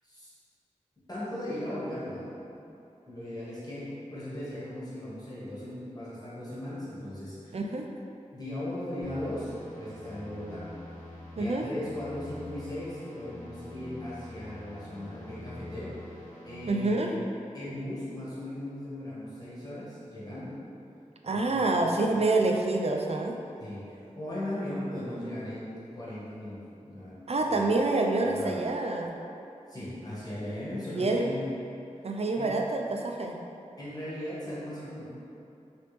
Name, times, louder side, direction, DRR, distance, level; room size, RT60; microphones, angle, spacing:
voice 1, 1.1-2.3 3.1-7.6 8.3-10.7 11.4-17.2 17.5-20.6 21.3-22.1 23.6-27.2 27.4-27.6 28.3-28.5 29.7-31.4 32.4-32.6 33.8-35.0, left 1 dB, 30° left, -11 dB, 1.3 m, -38 dB
voice 2, 7.5-7.9 11.4-11.7 16.7-17.1 21.2-23.4 27.3-29.2 30.9-31.3 32.0-33.4, right 2 dB, 50° right, 2 dB, 0.4 m, -27 dB
sound 1, 9.0-16.7, left 1 dB, 70° left, 1.0 m, -46 dB
3.0 x 3.0 x 3.3 m, 2.7 s
wide cardioid pair, 50°, 13 cm